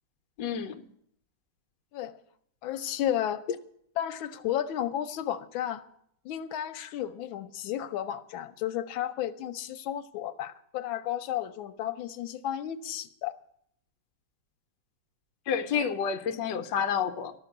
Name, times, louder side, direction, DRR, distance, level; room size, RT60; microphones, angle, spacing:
voice 1, 0.4-0.8 15.5-17.3, left 7 dB, 70° left, 1.4 m, -29 dB
voice 2, 2.6-3.4 4.0-5.8 6.2-13.3, left 11 dB, 90° left, 1.5 m, -33 dB
12.0 x 6.9 x 9.1 m
omnidirectional pair, 2.1 m